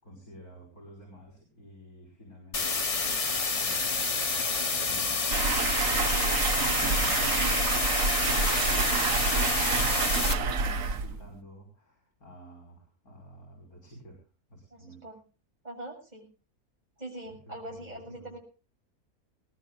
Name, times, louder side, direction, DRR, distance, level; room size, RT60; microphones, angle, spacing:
voice 1, 0.0-4.4 4.8-14.2 14.5-15.0 17.2-17.4 17.6-18.3, right 1 dB, 80° left, -1 dB, 6.0 m, -50 dB
sound 1, 2.5-10.3, left 4 dB, 30° left, 0.9 m, -28 dB
sound 2, 5.3-11.3, right 5 dB, 65° right, 1.4 m, -28 dB
voice 2, 8.9-9.3 14.7-15.2 15.6-16.3 17.0-18.4, right 1 dB, 30° right, 0 dB, 7.1 m, -43 dB
22.0 x 19.0 x 2.5 m, 0.36 s
omnidirectional pair, 1.5 m